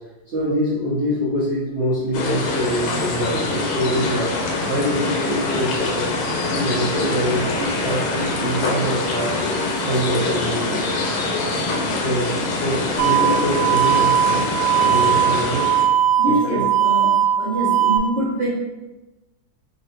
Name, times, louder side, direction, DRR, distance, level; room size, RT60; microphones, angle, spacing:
voice 1, 0.3-4.3 4.6-6.1 6.5-9.3 9.8-10.8 12.0-14.5 14.8-15.7 16.4-16.6, equal, 50° right, -9 dB, 0.9 m, -24 dB
sound 1, 2.1-15.8, left 2 dB, 80° left, 1.5 m, -24 dB
sound 2, 13.0-18.0, right 9 dB, 80° right, 1.4 m, -19 dB
voice 2, 16.2-18.5, right 1 dB, 5° right, -8 dB, 0.7 m, -24 dB
4.0 x 2.4 x 4.1 m, 1.1 s
omnidirectional pair, 2.3 m